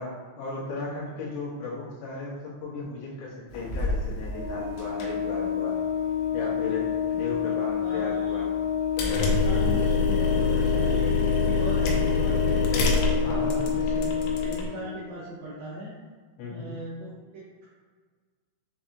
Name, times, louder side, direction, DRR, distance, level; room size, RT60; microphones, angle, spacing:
voice 1, 0.0-5.8 6.3-8.5 9.4-9.5 13.2-13.6 16.4-16.7, left 3 dB, 70° left, -7 dB, 2.8 m, -36 dB
sound 1, 3.5-14.7, left 3 dB, 90° left, 3.0 m, -27 dB
Organ, 4.3-15.0, left 8 dB, 65° right, 1.7 m, -28 dB
voice 2, 7.8-8.4 9.1-12.6 13.2-16.0 16.5-17.7, right 1 dB, 90° right, -8 dB, 2.0 m, -38 dB
6.9 x 2.6 x 2.6 m, 1.5 s
omnidirectional pair, 5.2 m